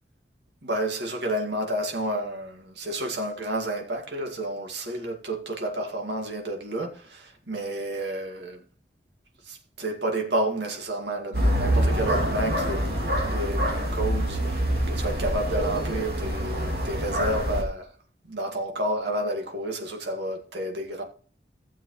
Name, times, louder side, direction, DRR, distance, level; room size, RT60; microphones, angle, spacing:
voice 1, 0.6-8.6 9.4-17.9 18.3-21.0, right 1 dB, 80° right, 2.2 m, -30 dB
sound 1, 11.3-17.6, equal, 60° right, 2.8 m, -26 dB
15.5 x 7.4 x 3.2 m
head